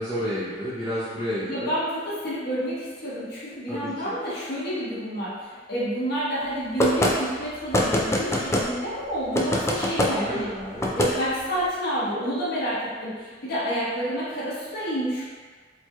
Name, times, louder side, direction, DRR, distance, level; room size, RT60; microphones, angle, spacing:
voice 1, 0.0-1.7 3.7-4.1 10.1-11.0, equal, 10° right, -14 dB, 0.7 m, -31 dB
voice 2, 1.4-10.5 10.9-15.2, equal, 60° left, -10 dB, 1.2 m, -29 dB
sound 1, 6.8-7.1 7.7-8.7 9.3-10.1 10.8-11.1, left 1 dB, 15° left, 0.4 m, -22 dB
4.4 x 2.9 x 2.3 m, 1.5 s
head